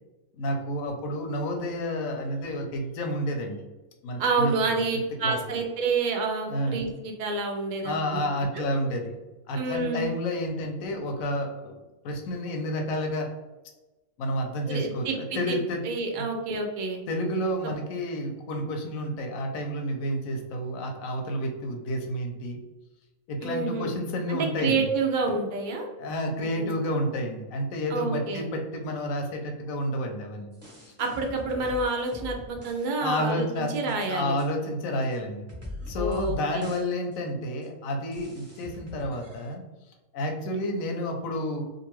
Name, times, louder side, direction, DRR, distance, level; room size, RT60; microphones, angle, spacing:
voice 1, 0.4-3.6 4.0-4.8 5.2-5.4 6.5-6.8 7.8-9.2 9.5-11.7 12.0-13.3 14.2-15.8 16.2-16.3 17.1-22.6 23.3-24.8 26.0-30.5 33.0-35.5 35.9-39.6 40.1-41.6, equal, 80° left, 3 dB, 1.0 m, -30 dB
voice 2, 4.2-8.2 8.5-8.7 9.5-10.1 14.7-15.6 15.8-17.0 23.4-24.0 24.3-25.9 26.6-26.7 27.9-28.5 31.0-34.4 35.9-36.6, right 3 dB, 85° right, 2 dB, 0.4 m, -28 dB
sound 1, 30.5-32.9 33.1-33.2 33.6-34.1 34.4-34.5 35.1-35.2 35.5-36.4 36.6-36.8 37.1-37.2 37.6-37.7 38.1-39.5, left 2 dB, 15° right, 0.6 m, -41 dB
2.6 x 2.5 x 3.0 m, 1.1 s
omnidirectional pair, 1.4 m